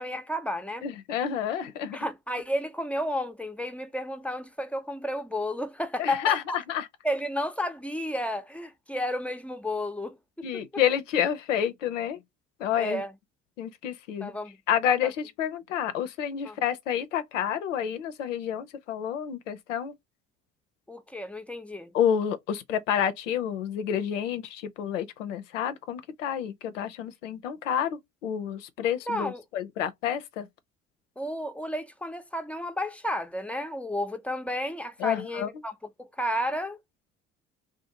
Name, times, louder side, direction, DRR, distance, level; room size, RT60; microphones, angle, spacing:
voice 1, 0.0-0.8 1.9-6.6 7.0-10.6 12.8-13.1 14.2-14.6 15.0-15.1 16.4-16.6 20.9-21.9 29.1-29.4 31.2-36.8, left 1 dB, 5° left, 0.5 m, -32 dB
voice 2, 0.8-2.0 6.0-6.9 10.4-12.2 12.6-13.0 13.6-14.3 14.7-19.9 21.9-30.5 35.0-35.5, left 9 dB, 85° left, 0.5 m, -29 dB
2.5 x 2.3 x 2.6 m
figure-of-eight pair, 55°, 37 cm